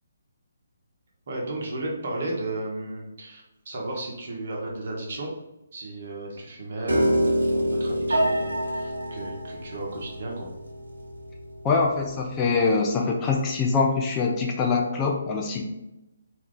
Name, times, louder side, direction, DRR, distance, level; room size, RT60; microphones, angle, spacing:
voice 1, 1.3-5.3 5.7-10.5, right 2 dB, 55° right, -2 dB, 1.0 m, -34 dB
Piano, 6.9-13.1, equal, 80° right, 0.7 m, -27 dB
voice 2, 11.6-15.6, left 4 dB, 20° left, 0 dB, 0.4 m, -24 dB
2.7 x 2.3 x 3.6 m, 0.94 s
figure-of-eight pair, 145°, 0 cm